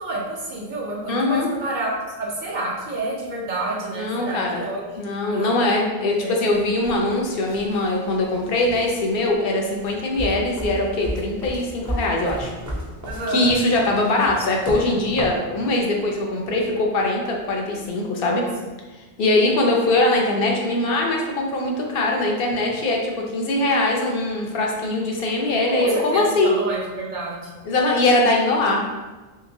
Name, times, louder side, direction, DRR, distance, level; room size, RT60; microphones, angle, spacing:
voice 1, 0.0-5.6 6.2-6.4 13.0-13.5 18.3-18.4 25.6-27.5, right 2 dB, 55° right, -4 dB, 0.7 m, -29 dB
voice 2, 1.1-1.5 3.9-4.6 5.0-12.5 13.3-18.4 19.2-26.6 27.6-28.8, left 2 dB, 70° left, 0 dB, 0.7 m, -22 dB
sound 1, 6.5-15.5 16.4-16.6 17.8-17.9, equal, 25° right, 0.4 m, -34 dB
2.9 x 2.9 x 2.6 m, 1.2 s
omnidirectional pair, 1.0 m